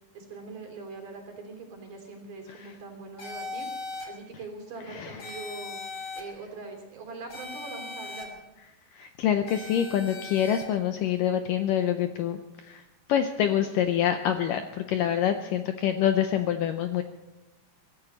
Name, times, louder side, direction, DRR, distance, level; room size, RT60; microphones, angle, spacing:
voice 1, 0.1-3.7 4.0-5.8 6.2-8.4, right 3 dB, 55° right, 2 dB, 4.7 m, -42 dB
sound 1, 3.2-4.1 5.2-6.2 7.3-8.2 9.5-10.6, left 3 dB, 35° left, 3.4 m, -38 dB
voice 2, 4.8-5.4 8.9-17.0, left 10 dB, 75° left, 7 dB, 2.0 m, -26 dB
24.5 x 14.0 x 4.1 m, 1.1 s
omnidirectional pair, 4.5 m